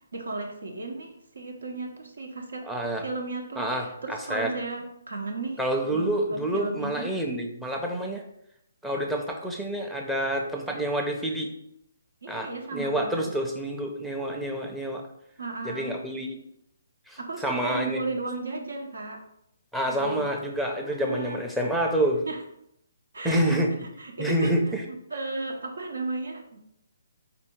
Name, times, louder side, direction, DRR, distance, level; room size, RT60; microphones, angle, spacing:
voice 1, 0.1-2.6 3.0-7.1 9.0-9.1 12.2-13.4 15.4-16.0 17.2-19.2 19.8-20.3 20.8-21.4 22.3-22.4 23.1-24.6 24.8-26.6, right 3 dB, 75° right, 2 dB, 1.0 m, -35 dB
voice 2, 2.7-3.0 3.6-4.5 5.6-8.2 8.8-11.5 12.3-15.0 15.6-16.4 17.1-18.0 19.7-22.2 23.2-23.7 24.2-24.8, right 1 dB, 5° right, 1 dB, 0.6 m, -28 dB
4.2 x 2.7 x 4.4 m, 0.77 s
figure-of-eight pair, 140°, 0 cm